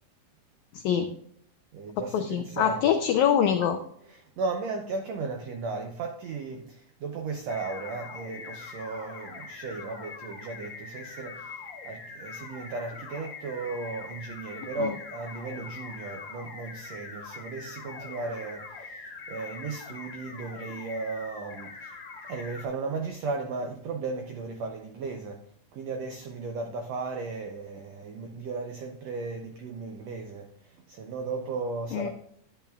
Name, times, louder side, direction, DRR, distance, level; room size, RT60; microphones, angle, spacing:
voice 1, 0.7-1.1 2.0-3.8 14.8-15.0 31.9-32.1, left 9 dB, 90° left, 1.6 m, -25 dB
voice 2, 1.7-3.0 4.4-21.9 22.3-25.4 25.7-30.5 30.9-32.1, right 4 dB, 85° right, 1.4 m, -35 dB
sound 1, 7.5-22.6, left 4 dB, 60° left, 1.0 m, -43 dB
12.0 x 9.1 x 2.4 m
omnidirectional pair, 4.0 m